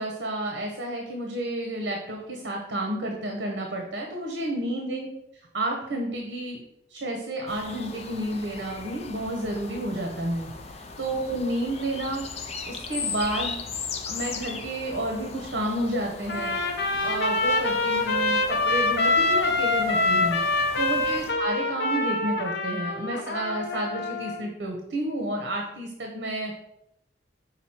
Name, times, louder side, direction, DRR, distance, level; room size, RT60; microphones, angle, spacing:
voice 1, 0.0-5.1 5.5-6.6 6.9-13.6 14.1-16.6 17.0-20.4 20.8-26.5, right 1 dB, 70° right, 1 dB, 0.9 m, -31 dB
sound 1, 7.5-21.3, left 4 dB, 35° left, 0.6 m, -38 dB
Trumpet, 16.3-24.4, left 2 dB, 65° left, 0.8 m, -25 dB
6.1 x 3.9 x 4.3 m, 0.82 s
head